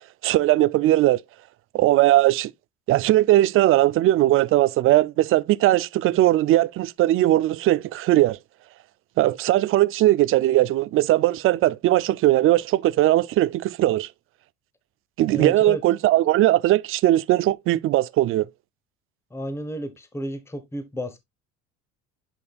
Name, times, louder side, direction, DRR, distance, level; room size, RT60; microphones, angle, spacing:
voice 1, 0.2-1.2 1.7-2.5 2.9-8.4 9.2-14.1 15.2-18.5, right 15 dB, 45° right, 0.5 m, -19 dB
voice 2, 15.3-15.8 19.3-21.2, equal, 10° left, 1.1 m, -32 dB
9.5 x 5.3 x 2.4 m
cardioid pair, 115°, 29 cm